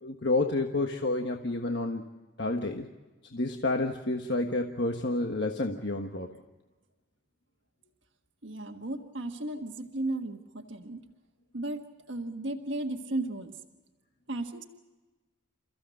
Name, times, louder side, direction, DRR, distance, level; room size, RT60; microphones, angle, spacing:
voice 1, 0.0-2.0 2.4-2.9 3.3-6.3, left 2 dB, 55° left, 3 dB, 1.4 m, -29 dB
voice 2, 8.4-11.0 11.5-13.6 14.3-14.6, right 2 dB, 65° right, 3 dB, 1.5 m, -35 dB
29.5 x 15.0 x 7.7 m, 1.2 s
head